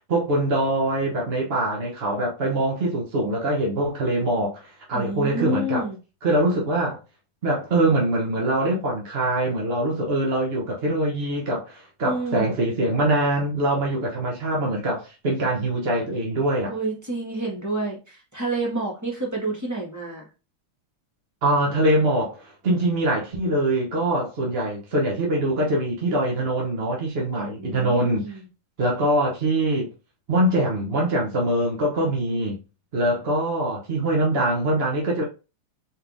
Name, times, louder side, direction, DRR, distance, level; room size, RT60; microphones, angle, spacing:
voice 1, 0.1-5.8 6.2-7.0 7.4-16.7 21.4-28.4 28.8-29.9 30.3-32.6 32.9-35.2, right 1 dB, 55° right, 0.6 m, -23 dB
voice 2, 4.9-6.0 12.0-12.5 16.7-20.3 27.6-28.5, right 2 dB, 10° right, 1.0 m, -29 dB
4.4 x 3.5 x 2.5 m
omnidirectional pair, 2.4 m